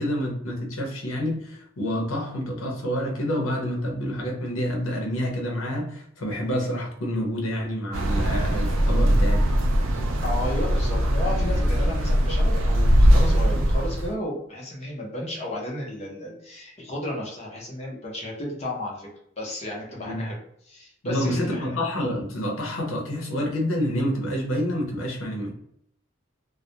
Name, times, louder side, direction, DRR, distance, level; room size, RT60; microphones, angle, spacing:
voice 1, 0.0-9.4 20.0-20.2 21.0-25.6, equal, 85° left, 0.7 m, -28 dB
sound 1, 7.9-14.1, equal, 80° right, 0.4 m, -21 dB
voice 2, 10.2-19.1 19.4-20.4 20.7-21.8, left 1 dB, 30° left, 0.7 m, -33 dB
2.3 x 2.1 x 2.8 m
head